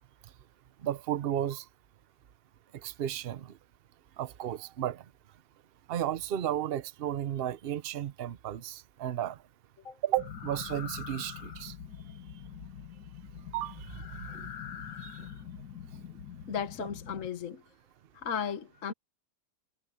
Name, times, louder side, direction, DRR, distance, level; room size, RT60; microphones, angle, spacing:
voice 1, 0.8-1.6 2.8-3.6 4.2-5.0 5.9-9.4 10.0-11.7 13.5-14.0 14.3-14.5 15.0-15.2, right 11 dB, 50° right, 0.8 m, -33 dB
sound 1, 10.2-17.3, left 8 dB, 85° left, 2.0 m, -44 dB
voice 2, 16.5-17.6 18.1-18.9, left 7 dB, 55° left, 1.5 m, -35 dB
omnidirectional pair, 1.7 m